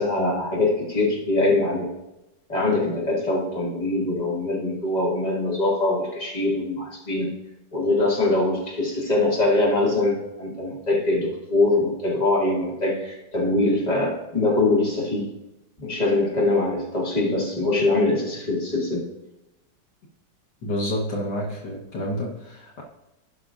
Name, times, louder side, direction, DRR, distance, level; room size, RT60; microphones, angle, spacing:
voice 1, 0.0-1.9 2.5-7.3 7.7-15.3 15.8-19.0, left 2 dB, 20° left, -5 dB, 2.4 m, -23 dB
voice 2, 20.6-22.8, equal, 70° left, -2 dB, 2.0 m, -29 dB
16.5 x 5.9 x 2.6 m, 0.94 s
omnidirectional pair, 2.0 m